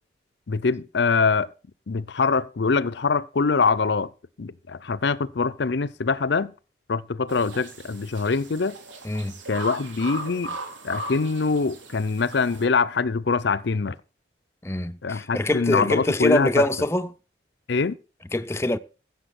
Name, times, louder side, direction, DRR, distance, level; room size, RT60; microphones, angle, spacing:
voice 1, 0.5-1.5 1.9-4.1 4.4-6.5 6.9-8.8 9.5-10.6 10.8-14.0 15.0-16.7 17.7-18.0, left 4 dB, 65° left, 0.6 m, -24 dB
sound 1, 7.3-12.6, right 2 dB, 75° right, 3.3 m, -38 dB
voice 2, 14.6-17.1 18.3-18.8, left 1 dB, 15° left, 0.5 m, -24 dB
15.0 x 7.1 x 5.9 m
head